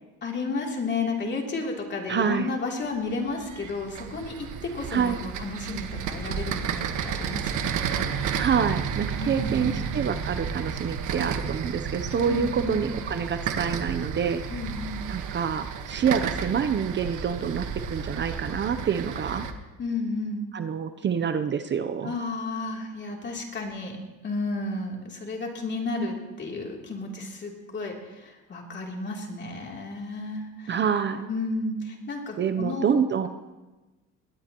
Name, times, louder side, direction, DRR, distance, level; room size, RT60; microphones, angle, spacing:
voice 1, 0.2-8.3 9.2-9.9 12.3-12.9 14.5-15.1 19.8-20.5 22.0-24.0 24.2-30.7 31.3-33.0, left 3 dB, 35° left, -1 dB, 3.1 m, -32 dB
voice 2, 2.1-2.5 4.9-5.2 8.4-14.4 15.1-19.5 20.5-22.2 30.7-31.3 32.4-33.3, right 7 dB, 35° right, 9 dB, 0.7 m, -27 dB
sound 1, 2.9-19.5, right 7 dB, 70° right, 1.4 m, -32 dB
22.0 x 18.5 x 3.0 m, 1.1 s
cardioid pair, 140°, 32 cm